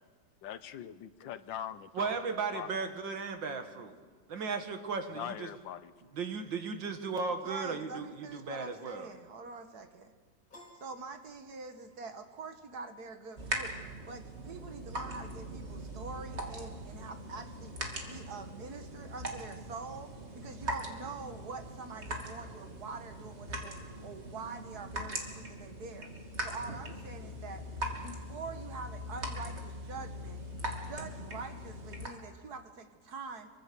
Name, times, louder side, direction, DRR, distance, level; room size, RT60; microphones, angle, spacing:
voice 1, 0.4-2.2 2.5-2.8 5.1-5.9, left 10 dB, 85° left, 13 dB, 1.6 m, -42 dB
voice 2, 1.9-3.9 4.3-5.5 6.1-8.1 8.3-9.1, right 4 dB, 80° right, 6 dB, 2.5 m, -35 dB
voice 3, 7.4-10.1 10.8-13.8 14.1-17.7 18.1-26.1 26.4-27.7 28.0-30.4 30.8-33.5, right 4 dB, 60° right, 7 dB, 2.0 m, -45 dB
Piano, 10.5-12.0, left 1 dB, 50° left, 5.1 m, -57 dB
sound 1, 13.4-32.1, right 1 dB, 35° right, 2.9 m, -41 dB
25.5 x 24.0 x 6.9 m, 1.5 s
omnidirectional pair, 2.0 m